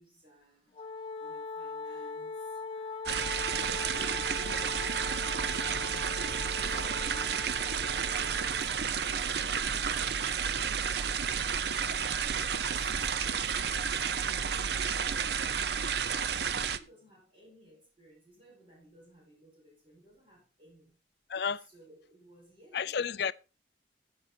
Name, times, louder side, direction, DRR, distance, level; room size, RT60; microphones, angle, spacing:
voice 1, 0.0-14.5 14.8-15.6 16.1-21.0 21.6-23.0, right 1 dB, 30° right, 6.6 m, -59 dB
Wind instrument woodwind instrument, 0.7-8.8, left 4 dB, 30° left, 0.7 m, -41 dB
sound 1, 3.0-16.8, right 7 dB, 60° right, 0.6 m, -31 dB
voice 2, 6.7-7.1 21.3-21.7 22.7-23.3, left 6 dB, 60° left, 0.4 m, -33 dB
15.5 x 8.5 x 2.8 m
head